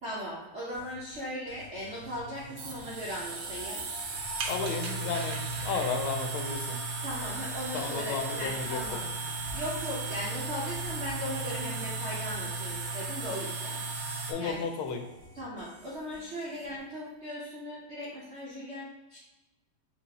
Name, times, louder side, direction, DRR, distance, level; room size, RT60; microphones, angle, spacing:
voice 1, 0.0-3.8 7.0-9.0 9.5-13.8 14.4-14.7 15.3-19.2, equal, 85° right, -6 dB, 0.6 m, -38 dB
sound 1, 0.7-16.8, right 1 dB, 40° right, 1.6 m, -54 dB
sound 2, 1.9-14.3, right 3 dB, 70° right, 1.5 m, -35 dB
voice 2, 4.4-5.4 5.6-6.8 7.7-8.8 14.3-15.0, left 5 dB, 80° left, 5 dB, 1.4 m, -33 dB
4.4 x 3.0 x 4.0 m, 1.1 s
omnidirectional pair, 2.4 m